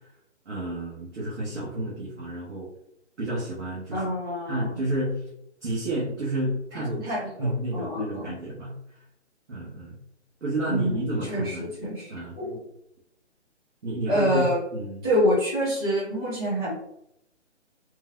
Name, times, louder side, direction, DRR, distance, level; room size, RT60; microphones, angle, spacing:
voice 1, 0.5-2.7 3.2-4.1 4.5-5.2 5.6-7.0 7.4-8.7 9.5-10.0 10.4-11.7 12.1-12.4 13.8-15.0, right 1 dB, 75° right, -6 dB, 1.0 m, -30 dB
voice 2, 3.9-4.8 6.7-8.3 10.7-12.6 14.1-14.6 15.0-16.7, equal, 20° right, -6 dB, 1.0 m, -27 dB
3.1 x 2.2 x 2.3 m, 0.78 s
figure-of-eight pair, 145°, 36 cm